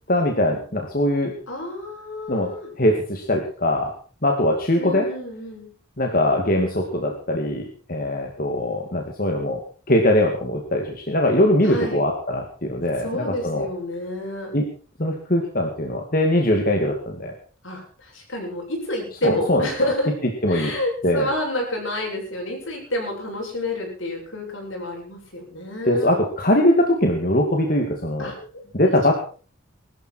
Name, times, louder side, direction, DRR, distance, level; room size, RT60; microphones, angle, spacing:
voice 1, 0.1-1.3 2.3-2.5 2.8-3.9 4.2-5.1 6.0-9.6 9.9-13.7 14.5-14.7 15.0-17.3 19.2-19.7 20.4-20.7 21.0-21.3 25.8-28.5 28.7-29.1, left 1 dB, 45° left, 2 dB, 2.4 m, -21 dB
voice 2, 1.5-2.7 4.8-5.7 11.6-12.0 13.0-14.5 17.6-20.1 20.5-26.1 28.2-28.4, left 1 dB, 75° left, 1 dB, 7.3 m, -29 dB
21.0 x 13.0 x 4.6 m, 0.39 s
head